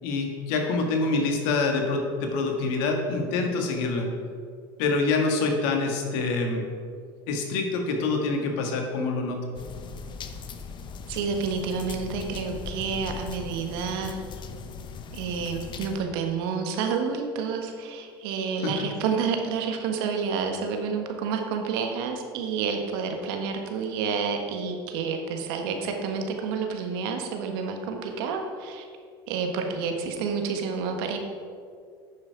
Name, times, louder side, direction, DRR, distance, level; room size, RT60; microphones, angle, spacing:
voice 1, 0.0-4.1 4.8-6.6 7.3-9.4 18.6-18.8, left 3 dB, 70° left, 3 dB, 1.7 m, -26 dB
sound 1, 9.5-16.0, left 5 dB, 40° left, 0.9 m, -39 dB
voice 2, 11.1-14.2 15.1-28.8 29.3-31.2, right 5 dB, 70° right, 4 dB, 1.4 m, -29 dB
9.8 x 6.8 x 4.6 m, 2.2 s
hypercardioid pair, 85°, 13 cm